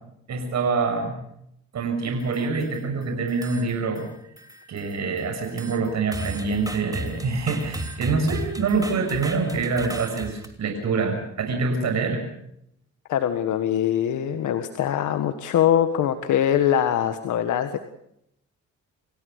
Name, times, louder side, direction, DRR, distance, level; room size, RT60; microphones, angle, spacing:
voice 1, 0.3-1.2 1.7-4.1 4.7-12.2, right 4 dB, 65° right, 4 dB, 6.5 m, -25 dB
sound 1, 2.1-2.9 3.3-4.1 4.4-10.5, right 1 dB, 10° right, 3.1 m, -36 dB
voice 2, 13.1-17.8, left 10 dB, 75° left, 8 dB, 1.7 m, -22 dB
27.5 x 17.0 x 6.8 m, 0.75 s
cardioid pair, 90°, 30 cm